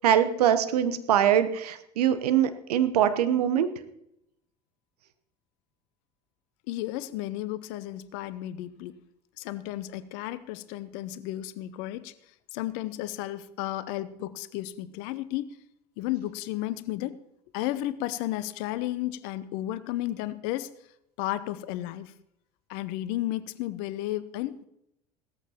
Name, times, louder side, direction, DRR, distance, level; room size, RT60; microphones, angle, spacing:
voice 1, 0.0-3.7, right 10 dB, 70° right, 11 dB, 1.0 m, -23 dB
voice 2, 6.7-9.0 9.4-12.1 12.5-15.5 16.0-17.2 17.5-20.7 21.2-22.1 22.7-24.7, left 15 dB, 55° left, 15 dB, 0.8 m, -33 dB
17.0 x 14.0 x 3.0 m, 0.79 s
figure-of-eight pair, 70°, 21 cm